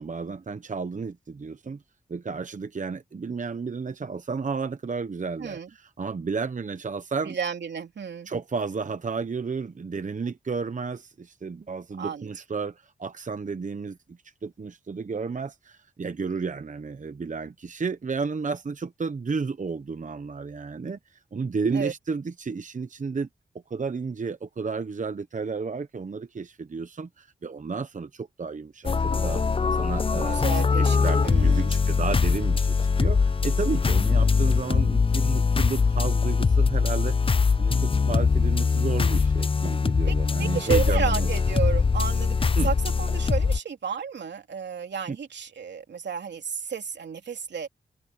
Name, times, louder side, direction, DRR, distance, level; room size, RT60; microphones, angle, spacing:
voice 1, 0.0-1.8 2.1-7.4 8.3-23.3 23.7-37.2 37.6-41.3 42.6-42.7 45.1-45.2, right 4 dB, 45° right, 1.0 m, -32 dB
voice 2, 7.2-8.3 12.0-12.3 21.7-21.9 30.2-31.0 31.2-31.7 40.0-47.7, right 6 dB, 80° right, 3.1 m, -32 dB
sound 1, 28.8-43.6, left 5 dB, 30° left, 0.5 m, -22 dB
cardioid pair, 55°, 18 cm